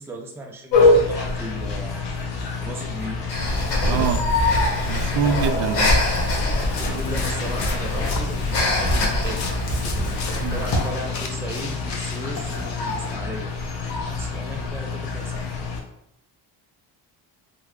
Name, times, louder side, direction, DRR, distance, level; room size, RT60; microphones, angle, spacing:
voice 1, 0.0-1.9 2.6-3.2 3.8-4.1 6.7-9.5 10.5-15.5, right 1 dB, 5° right, 2 dB, 0.3 m, -36 dB
sound 1, 0.7-15.8, left 3 dB, 90° left, 0.9 m, -26 dB
Breathing, 3.3-11.0, left 1 dB, 65° left, 1.1 m, -24 dB
voice 2, 3.8-4.2 4.9-5.9 10.4-10.6, right 7 dB, 75° right, 8 dB, 0.5 m, -24 dB
sound 2, 6.3-13.2, left 4 dB, 45° left, 0.6 m, -35 dB
3.7 x 2.1 x 3.0 m, 0.80 s
cardioid pair, 115°, 41 cm